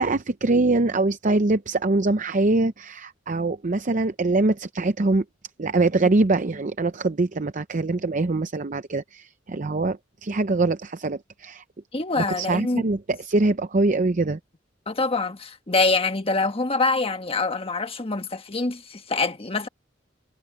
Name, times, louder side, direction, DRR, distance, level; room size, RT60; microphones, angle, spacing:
voice 1, 0.0-5.2 5.6-11.6 12.2-14.4, right 2 dB, 40° right, 0.7 m, -23 dB
voice 2, 11.9-12.8 14.9-19.7, left 3 dB, 30° left, 1.4 m, -25 dB
head